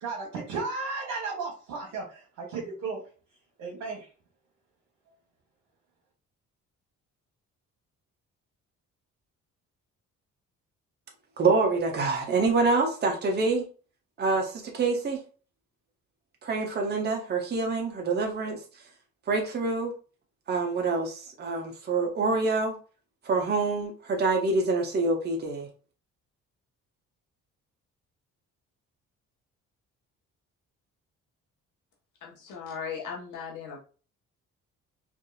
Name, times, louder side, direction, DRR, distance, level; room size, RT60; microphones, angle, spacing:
voice 1, 0.0-3.0 3.6-4.1, right 4 dB, 80° right, -3 dB, 1.1 m, -34 dB
voice 2, 11.4-13.6 14.2-15.2 16.4-18.6 19.3-19.9 20.5-22.8 23.2-25.7, right 3 dB, 35° right, 1 dB, 0.8 m, -26 dB
voice 3, 32.2-33.8, left 6 dB, 80° left, -2 dB, 1.2 m, -37 dB
3.5 x 2.6 x 2.4 m, 0.37 s
cardioid pair, 90°, 30 cm